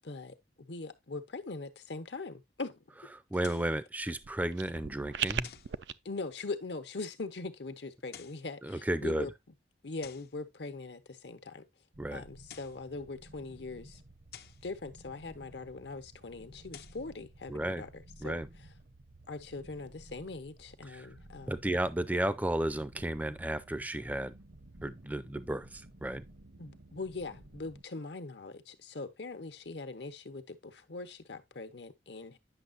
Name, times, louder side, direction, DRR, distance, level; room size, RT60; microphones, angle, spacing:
voice 1, 0.0-2.8 6.0-9.3 9.8-11.6 12.1-14.0 14.6-18.7 19.3-21.6 26.6-32.4, left 3 dB, 80° left, 1.0 m, -42 dB
voice 2, 3.3-5.5 8.6-9.3 12.0-12.2 17.5-17.8 18.2-18.5 20.9-21.1 21.5-24.4 24.8-26.2, right 1 dB, 10° right, 0.4 m, -33 dB
sound 1, 3.4-3.8 5.4-5.8 8.0-8.5 10.0-10.4 12.3-12.9 14.3-14.7 16.5-17.1, left 9 dB, 60° left, 0.5 m, -51 dB
sound 2, 4.0-5.9, right 8 dB, 90° right, 0.5 m, -37 dB
sound 3, 11.9-27.8, right 1 dB, 60° right, 0.8 m, -55 dB
9.8 x 6.4 x 2.5 m
head